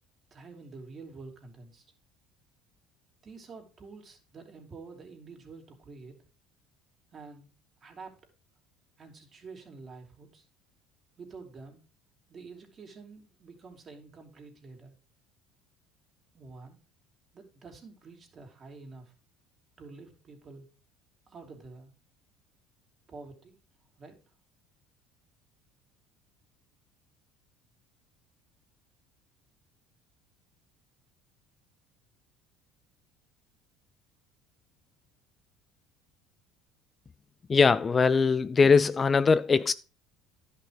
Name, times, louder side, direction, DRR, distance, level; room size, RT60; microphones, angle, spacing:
voice 1, 0.3-1.8 3.2-6.2 7.1-7.5 7.8-8.1 9.0-10.4 11.2-11.8 12.3-14.9 16.3-16.8 17.3-19.1 19.8-20.7 21.3-21.9 23.1-23.6 24.0-24.2, right 4 dB, 40° right, 3.4 m, -48 dB
voice 2, 37.5-39.7, left 5 dB, 30° left, 0.4 m, -21 dB
11.0 x 6.0 x 5.0 m
supercardioid pair, 100°, 0 cm